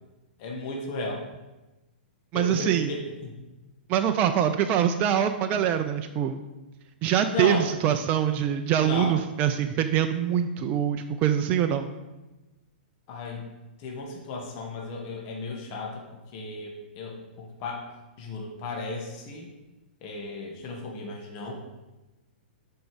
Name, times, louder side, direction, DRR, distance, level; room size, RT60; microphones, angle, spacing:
voice 1, 0.4-1.3 2.3-3.4 5.5-5.7 7.3-8.0 8.8-9.2 13.1-13.5 13.8-16.1 16.3-17.8 18.2-19.5 20.0-21.5, left 3 dB, 40° left, 0 dB, 1.6 m, -35 dB
voice 2, 2.3-2.9 3.9-6.4 7.0-11.9, right 9 dB, 35° right, 7 dB, 0.5 m, -24 dB
7.7 x 5.4 x 5.0 m, 1.1 s
hypercardioid pair, 125°, 6 cm